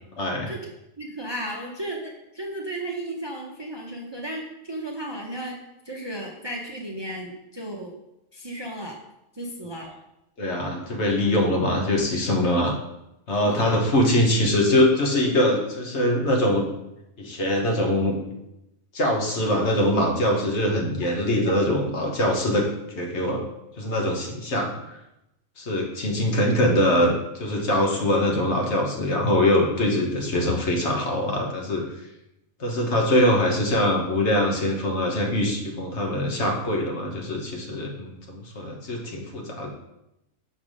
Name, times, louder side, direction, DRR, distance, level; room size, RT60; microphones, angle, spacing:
voice 1, 0.2-0.5 10.4-12.7 13.3-16.7 17.2-18.3 18.9-22.7 22.9-23.4 23.8-25.0 25.6-31.8 32.6-39.7, left 1 dB, 60° left, 0 dB, 1.5 m, -23 dB
voice 2, 1.0-5.5 5.8-7.9 8.3-9.0 9.3-9.9 13.5-13.8, right 1 dB, 25° right, -1 dB, 0.7 m, -34 dB
6.5 x 3.5 x 6.2 m, 0.87 s
omnidirectional pair, 1.4 m